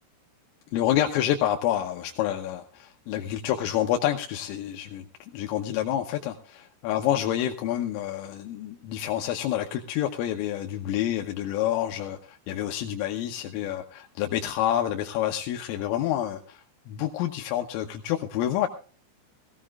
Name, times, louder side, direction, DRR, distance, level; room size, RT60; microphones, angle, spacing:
voice 1, 0.7-18.7, left 11 dB, 80° left, 3 dB, 3.4 m, -28 dB
20.0 x 16.0 x 2.4 m, 0.41 s
omnidirectional pair, 6.0 m